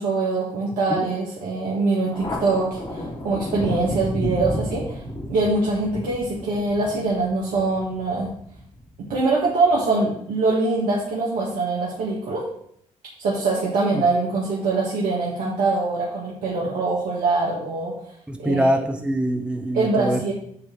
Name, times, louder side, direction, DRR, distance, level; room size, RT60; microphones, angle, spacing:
voice 1, 0.0-5.0 5.3-8.3 9.1-12.4 13.2-17.9 18.4-18.7 19.7-20.3, right 3 dB, 75° right, -5 dB, 1.7 m, -23 dB
Thunder, 2.1-9.2, equal, 40° left, 2.7 m, -32 dB
voice 2, 18.3-20.2, right 1 dB, 5° right, 4 dB, 1.0 m, -24 dB
8.6 x 3.3 x 5.9 m, 0.68 s
hypercardioid pair, 50°, 14 cm